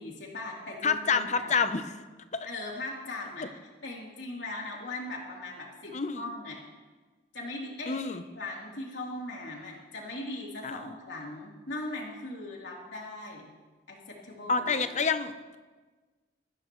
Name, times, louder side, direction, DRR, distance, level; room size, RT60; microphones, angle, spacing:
voice 1, 0.0-1.5 2.4-3.5 3.8-6.6 7.3-8.0 8.4-13.5 13.9-14.0 14.2-14.8, left 2 dB, 85° left, -3 dB, 3.5 m, -39 dB
voice 2, 0.8-2.0 2.3-2.5 5.9-6.3 7.9-8.2 10.6-10.8 14.5-15.6, left 5 dB, 40° left, 10 dB, 0.8 m, -28 dB
20.5 x 14.5 x 3.2 m, 1.3 s
head